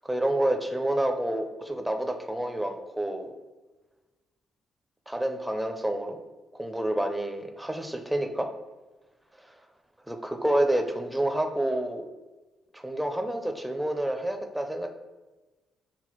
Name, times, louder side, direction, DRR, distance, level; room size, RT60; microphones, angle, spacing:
voice 1, 0.0-3.3 5.1-6.2 6.5-8.5 10.1-12.1 12.7-14.9, right 1 dB, 5° right, 5 dB, 0.4 m, -28 dB
5.9 x 2.1 x 2.9 m, 1.2 s
cardioid pair, 90°, 0 cm